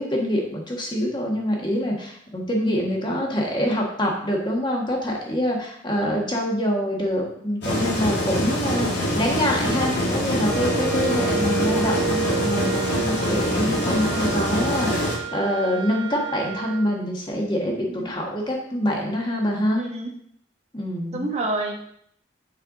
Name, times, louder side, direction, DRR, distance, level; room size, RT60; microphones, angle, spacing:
voice 1, 0.0-8.9 9.1-19.8 20.7-21.3, equal, 25° left, -1 dB, 1.4 m, -25 dB
sound 1, 7.6-15.1, left 1 dB, 70° left, 2.4 m, -24 dB
Wind instrument woodwind instrument, 10.4-16.8, right 5 dB, 80° right, 1.6 m, -30 dB
voice 2, 19.7-20.1 21.1-21.7, right 2 dB, 35° right, 0 dB, 1.1 m, -28 dB
6.6 x 5.7 x 3.8 m, 0.68 s
head